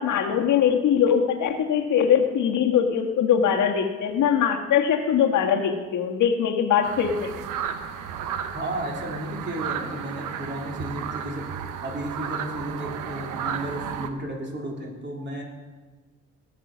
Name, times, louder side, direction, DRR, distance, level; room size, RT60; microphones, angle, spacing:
voice 1, 0.0-7.3, left 8 dB, 75° left, 2 dB, 1.6 m, -22 dB
sound 1, 6.8-14.1, right 8 dB, 90° right, 0.9 m, -33 dB
voice 2, 8.5-11.5 11.8-15.4, right 1 dB, 35° right, -1 dB, 3.5 m, -33 dB
18.5 x 6.7 x 6.1 m, 1.4 s
cardioid pair, 90°, 30 cm